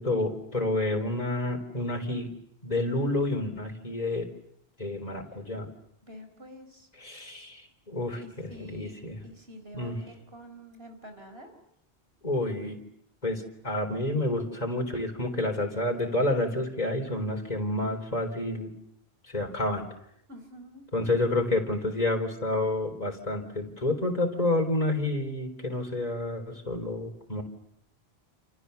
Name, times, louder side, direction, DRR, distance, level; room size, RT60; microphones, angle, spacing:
voice 1, 0.0-2.3 2.6-4.3 4.8-5.7 7.0-9.2 9.7-10.0 12.2-12.8 13.2-18.7 19.3-19.9 20.9-27.4, left 2 dB, 40° left, 3 dB, 4.1 m, -29 dB
voice 2, 6.1-6.9 8.2-8.9 9.2-11.5 20.3-20.8, left 1 dB, 65° right, 6 dB, 4.7 m, -47 dB
28.5 x 28.5 x 7.0 m, 0.73 s
omnidirectional pair, 1.1 m